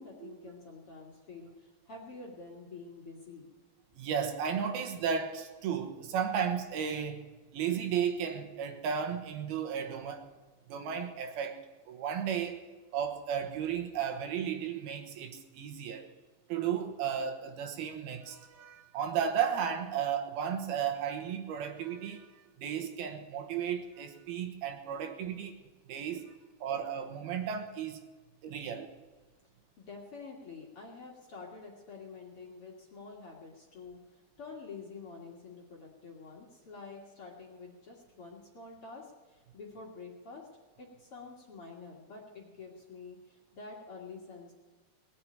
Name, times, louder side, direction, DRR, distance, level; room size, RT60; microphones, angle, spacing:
voice 1, 0.0-3.5 29.8-40.5 40.8-44.5, left 4 dB, 45° left, -2 dB, 2.1 m, -48 dB
voice 2, 3.9-7.2 7.5-10.2 10.7-11.6 11.9-12.6 12.9-16.1 16.5-22.3 22.6-25.6 25.9-26.3 26.6-28.0 28.4-28.9, right 8 dB, 75° right, 5 dB, 3.1 m, -34 dB
19.0 x 7.7 x 8.9 m, 1.3 s
omnidirectional pair, 4.6 m